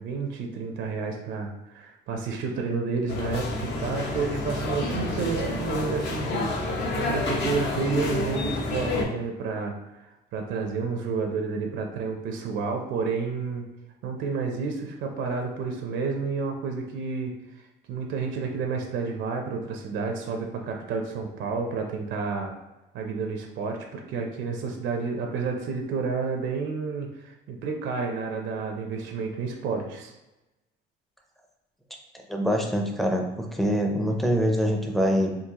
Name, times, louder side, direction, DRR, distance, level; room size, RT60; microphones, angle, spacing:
voice 1, 0.0-9.7 10.3-13.7 14.0-17.3 17.9-22.5 22.9-30.1, right 4 dB, 75° right, 3 dB, 0.5 m, -30 dB
sound 1, 3.1-9.0, left 2 dB, 65° left, 0.7 m, -29 dB
voice 2, 32.3-35.3, equal, ahead, 1 dB, 0.4 m, -24 dB
3.8 x 2.4 x 2.8 m, 1.0 s
cardioid pair, 135°, 19 cm